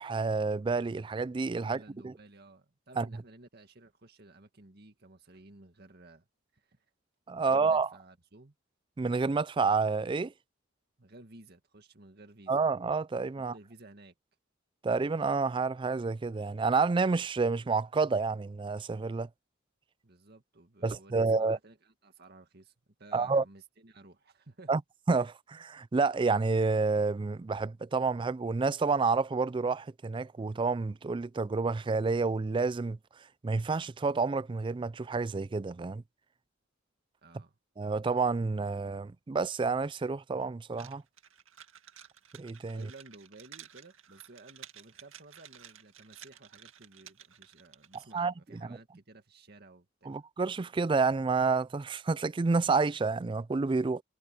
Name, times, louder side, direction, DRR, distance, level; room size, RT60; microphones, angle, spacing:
voice 1, 0.0-2.1 3.0-3.1 7.3-7.9 9.0-10.3 12.5-13.5 14.8-19.3 20.8-21.6 23.1-23.4 24.7-24.8 25.1-33.0 33.4-36.0 37.8-41.0 42.4-42.9 48.1-48.8 50.1-54.0, right 4 dB, 25° right, 0.3 m, -29 dB
voice 2, 1.6-6.3 6.5-6.8 7.3-8.5 11.0-12.6 13.4-14.1 20.0-22.7 23.0-24.7 37.2-37.6 42.7-50.2, right 2 dB, 55° right, 2.0 m, -54 dB
sound 1, 40.7-48.2, right 10 dB, 85° right, 2.1 m, -53 dB
head